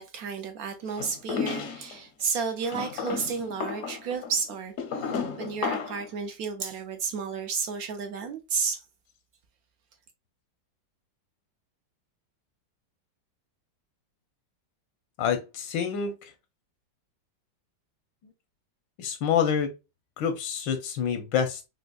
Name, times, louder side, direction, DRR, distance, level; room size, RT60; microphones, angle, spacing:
voice 1, 0.0-8.8, right 5 dB, 75° right, 0.8 m, -32 dB
sound 1, 1.0-2.0 2.6-6.1, left 5 dB, 65° left, 0.8 m, -33 dB
voice 2, 15.2-16.3 19.0-19.7 20.2-21.6, left 7 dB, 80° left, 1.3 m, -27 dB
5.0 x 2.1 x 2.2 m
omnidirectional pair, 2.0 m